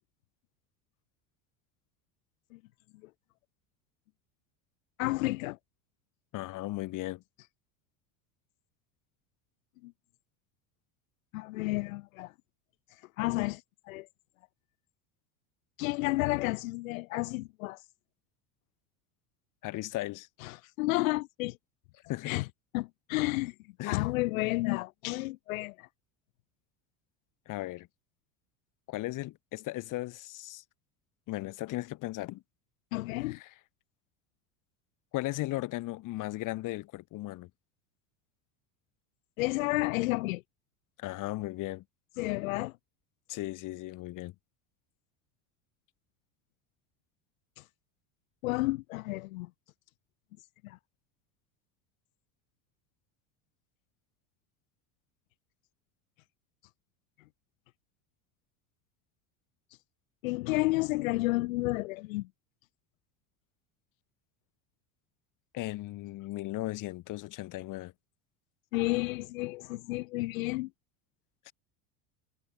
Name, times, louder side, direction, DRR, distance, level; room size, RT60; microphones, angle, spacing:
voice 1, 5.0-5.6 9.8-9.9 11.3-12.3 13.2-14.1 15.8-17.8 20.4-21.6 22.2-22.5 22.7-23.5 23.9-25.9 32.9-33.4 39.4-40.4 42.2-42.8 47.6-47.7 48.4-49.5 50.6-50.8 60.2-62.3 68.7-70.7, left 21 dB, 90° left, 2.5 m, -31 dB
voice 2, 6.3-7.2 19.6-20.3 22.1-22.4 23.8-24.0 27.5-27.9 28.9-30.6 31.3-32.4 33.3-33.5 35.1-37.5 41.0-41.8 43.3-44.3 65.5-67.9 71.5-71.6, left 18 dB, 50° left, 2.9 m, -36 dB
supercardioid pair, 130°, 40 cm